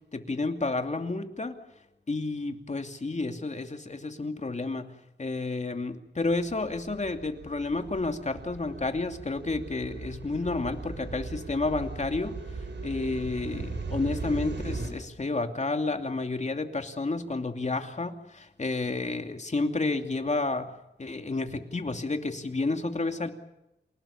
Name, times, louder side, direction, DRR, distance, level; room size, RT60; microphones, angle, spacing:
voice 1, 0.1-1.6 2.1-4.9 5.2-12.4 12.8-20.7 21.0-23.3, left 3 dB, 40° left, 6 dB, 2.7 m, -30 dB
sound 1, 6.2-14.9, right 3 dB, 85° right, 6.0 m, -38 dB
28.5 x 18.5 x 7.3 m, 0.88 s
wide cardioid pair, 105°, 18 cm